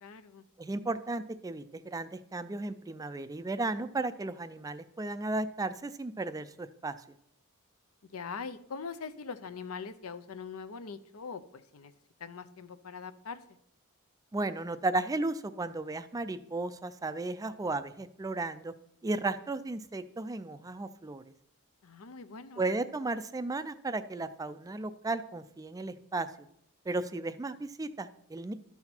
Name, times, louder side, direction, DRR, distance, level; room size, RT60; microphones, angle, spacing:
voice 1, 0.0-0.4 8.1-11.9 12.2-13.4 21.8-22.7, left 5 dB, 70° left, 12 dB, 0.6 m, -42 dB
voice 2, 0.6-6.9 14.3-18.7 19.0-21.2 22.6-26.3 26.9-28.5, right 2 dB, 15° right, 12 dB, 0.4 m, -34 dB
12.0 x 5.8 x 4.4 m, 0.74 s
head